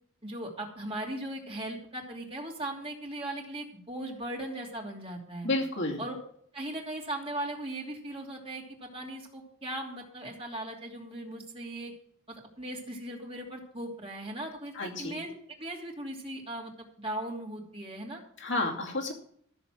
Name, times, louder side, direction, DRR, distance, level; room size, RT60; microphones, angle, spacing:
voice 1, 0.2-5.5 6.0-6.2 6.5-11.9 12.3-15.3 15.6-18.2, right 1 dB, 30° right, -1 dB, 2.9 m, -38 dB
voice 2, 5.4-6.0 14.7-15.2 18.4-19.1, left 2 dB, 65° left, 1 dB, 2.6 m, -31 dB
14.0 x 6.9 x 6.2 m, 0.62 s
head